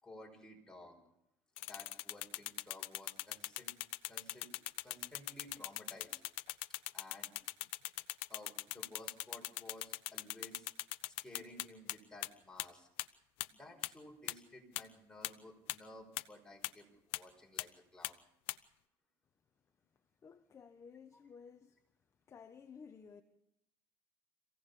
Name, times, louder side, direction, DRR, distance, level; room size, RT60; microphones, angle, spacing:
voice 1, 0.0-1.0 1.6-3.7 4.1-4.5 4.8-6.2 6.9-7.3 8.3-10.7 11.0-12.9 13.5-18.2, left 1 dB, 5° left, 5.2 m, -55 dB
sound 1, 1.6-11.9 12.2-12.3 12.6-12.7 13.0-13.1 13.4-13.5 13.8-13.9 14.3-14.4 14.8-14.9 15.2-15.3 15.7-15.8 16.2-16.3 16.6-16.7 17.1-17.2 17.6-17.7 18.0-18.1 18.5-18.6, left 21 dB, 85° left, 0.7 m, -39 dB
voice 2, 20.2-21.8 22.3-23.2, left 6 dB, 30° left, 1.1 m, -55 dB
26.0 x 16.5 x 7.0 m
cardioid pair, 120°, 9 cm